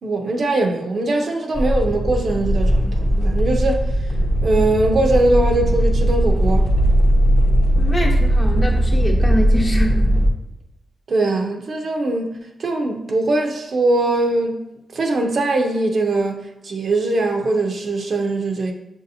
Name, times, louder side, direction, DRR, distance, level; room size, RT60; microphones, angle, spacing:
voice 1, 0.0-3.8 4.4-6.7 11.1-14.6 14.9-18.7, right 2 dB, 60° right, 0.6 m, -21 dB
sound 1, 1.5-10.3, equal, 5° left, 0.6 m, -18 dB
voice 2, 7.8-10.0, equal, 30° left, 0.9 m, -24 dB
6.2 x 2.7 x 2.7 m
cardioid pair, 70°, 0 cm